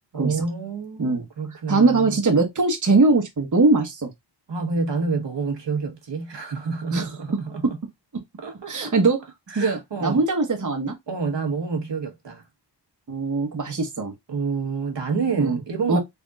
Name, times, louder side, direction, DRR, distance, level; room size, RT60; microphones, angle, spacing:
voice 1, 0.1-2.2 4.5-7.7 8.4-8.9 9.5-10.2 11.1-12.4 14.3-16.0, right 4 dB, 75° right, 1.3 m, -28 dB
voice 2, 1.7-4.1 6.9-7.1 7.6-7.7 8.1-8.2 8.7-9.2 9.5-10.9 13.1-14.1 15.4-15.6 15.9-16.0, right 3 dB, 40° right, 1.1 m, -21 dB
3.9 x 3.4 x 2.3 m
wide cardioid pair, 100°, 44 cm